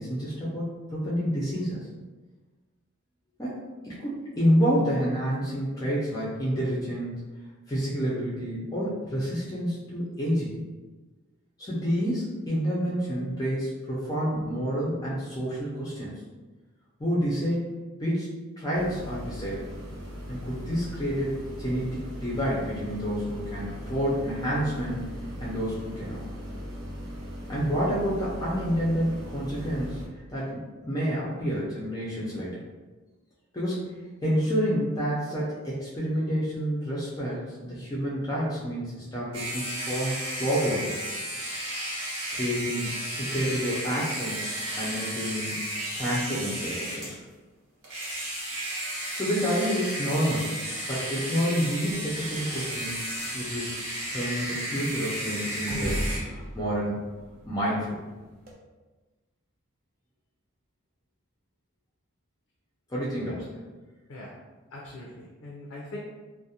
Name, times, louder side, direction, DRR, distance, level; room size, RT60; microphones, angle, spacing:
voice 1, 0.0-1.8 3.4-7.2 7.7-10.5 11.6-16.1 17.0-17.7 18.0-18.3 18.6-19.8 20.3-25.1 25.4-26.2 27.5-32.6 33.5-41.0 42.3-44.5 44.7-47.1 49.1-50.6 50.9-53.0 53.3-53.8 54.1-57.0 57.5-58.0 62.9-63.4, equal, 15° left, -8 dB, 0.4 m, -29 dB
sound 1, 18.7-30.1, equal, 65° right, 0.8 m, -39 dB
sound 2, 39.3-47.2 47.8-56.2, right 1 dB, 90° right, 1.1 m, -33 dB
sound 3, 51.8-58.5, equal, 40° right, 0.4 m, -39 dB
voice 2, 64.7-66.0, left 1 dB, 80° left, -4 dB, 0.4 m, -42 dB
2.4 x 2.1 x 2.7 m, 1.3 s
head